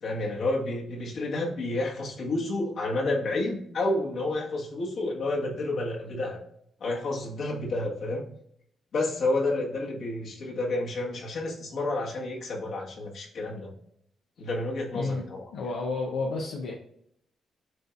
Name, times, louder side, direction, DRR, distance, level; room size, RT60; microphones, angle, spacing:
voice 1, 0.0-6.4 6.8-8.2 8.9-13.7 14.4-15.5, left 2 dB, 70° left, -1 dB, 1.4 m, -30 dB
voice 2, 14.9-16.7, left 3 dB, 85° left, -2 dB, 0.7 m, -31 dB
7.5 x 2.7 x 2.4 m, 0.71 s
cardioid pair, 65°, 0 cm